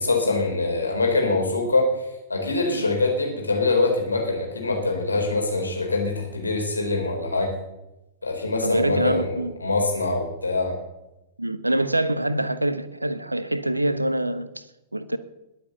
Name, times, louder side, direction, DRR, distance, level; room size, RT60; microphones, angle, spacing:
voice 1, 0.0-1.9 2.3-7.5 8.2-10.7, left 3 dB, 80° left, 2 dB, 4.5 m, -24 dB
voice 2, 8.6-9.5 11.4-14.5 14.9-15.2, right 1 dB, 85° right, 13 dB, 1.1 m, -25 dB
21.0 x 7.8 x 7.0 m, 0.94 s
figure-of-eight pair, 100°, 0 cm